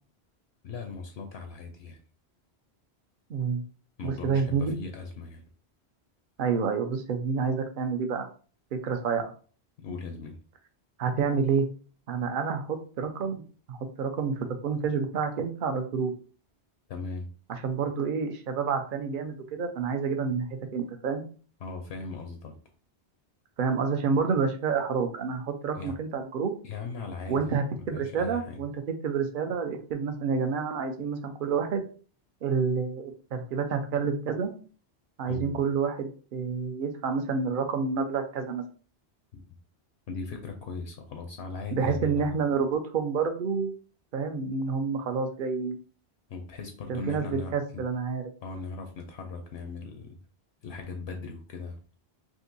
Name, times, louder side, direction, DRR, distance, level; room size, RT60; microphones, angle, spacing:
voice 1, 0.6-2.0 4.0-5.4 9.8-10.4 16.9-17.3 21.6-22.5 25.7-26.0 26.6-27.4 27.9-28.6 35.3-35.6 39.3-39.4 40.1-42.4 46.3-47.8 48.4-50.2 50.6-51.8, left 4 dB, 75° left, 4 dB, 0.8 m, -38 dB
voice 2, 3.3-3.6 4.0-4.8 6.4-8.3 8.8-9.3 11.0-11.7 12.1-13.4 13.7-16.1 17.5-21.2 23.6-26.5 27.3-28.7 29.0-31.8 32.4-34.5 35.2-38.6 41.7-43.7 44.1-45.8 46.9-47.2 47.5-48.2, right 5 dB, 55° right, 5 dB, 0.7 m, -28 dB
3.7 x 2.5 x 2.6 m, 0.39 s
omnidirectional pair, 1.1 m